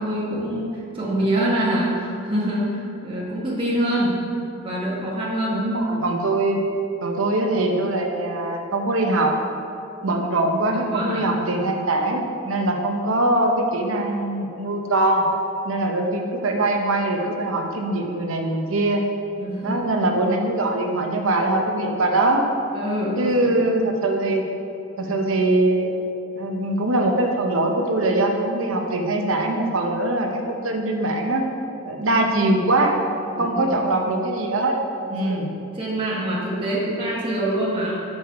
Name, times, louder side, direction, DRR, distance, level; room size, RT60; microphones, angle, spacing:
voice 1, 0.0-4.2 4.6-5.6 10.8-11.4 19.4-19.8 22.7-23.5 33.3-33.8 35.0-37.9, right 1 dB, 25° right, -6 dB, 1.1 m, -25 dB
voice 2, 5.5-6.6 7.0-9.4 10.0-15.3 15.6-19.1 19.6-22.4 23.2-24.4 25.0-25.9 26.4-31.5 31.9-33.0 33.4-34.8 35.1-35.5, right 2 dB, 75° right, 3 dB, 0.8 m, -22 dB
6.3 x 5.4 x 4.7 m, 2.6 s
head